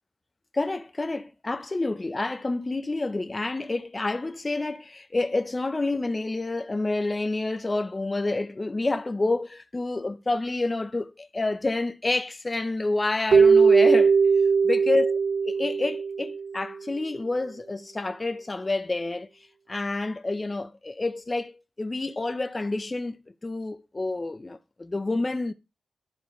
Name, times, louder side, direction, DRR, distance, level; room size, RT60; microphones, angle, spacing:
voice 1, 0.5-14.2 14.6-15.2 15.5-19.3 19.7-25.5, left 2 dB, 35° left, 0.6 m, -28 dB
Keyboard (musical), 13.3-16.6, right 5 dB, 80° right, 0.6 m, -19 dB
11.5 x 4.0 x 3.1 m
cardioid pair, 45°, 0 cm